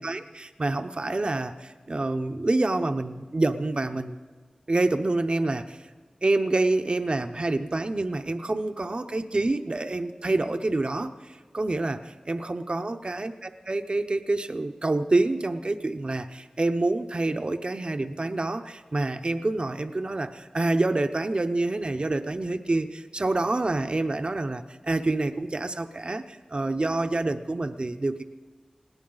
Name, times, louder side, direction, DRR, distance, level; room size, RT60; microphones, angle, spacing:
voice 1, 0.0-4.2 4.7-5.9 6.2-13.3 13.7-28.2, right 2 dB, 50° right, 7 dB, 0.7 m, -27 dB
20.0 x 16.5 x 3.9 m, 1.5 s
wide cardioid pair, 50°, 2 cm